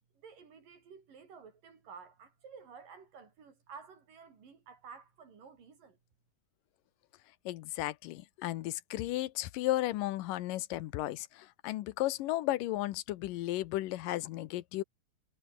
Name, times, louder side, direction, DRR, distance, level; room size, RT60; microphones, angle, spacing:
voice 1, 0.2-6.0, right 6 dB, 85° right, 6.1 m, -52 dB
voice 2, 7.5-14.8, left 16 dB, 85° left, 2.6 m, -34 dB
omnidirectional pair, 3.8 m